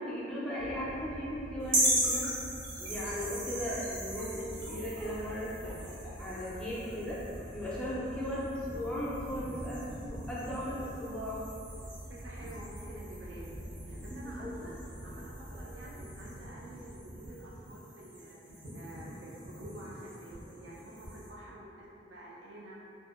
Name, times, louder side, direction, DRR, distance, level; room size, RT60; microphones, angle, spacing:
voice 1, 0.0-2.3 2.8-7.2 7.5-11.4 14.1-14.5, equal, 5° left, -8 dB, 0.4 m, -37 dB
sound 1, 0.6-17.1, equal, 70° left, 0.4 m, -47 dB
sound 2, 1.7-21.3, right 1 dB, 80° right, 0.8 m, -39 dB
voice 2, 12.1-13.5 13.8-14.8 15.0-22.8, right 1 dB, 65° right, -5 dB, 0.4 m, -49 dB
2.5 x 2.4 x 2.4 m, 2.7 s
head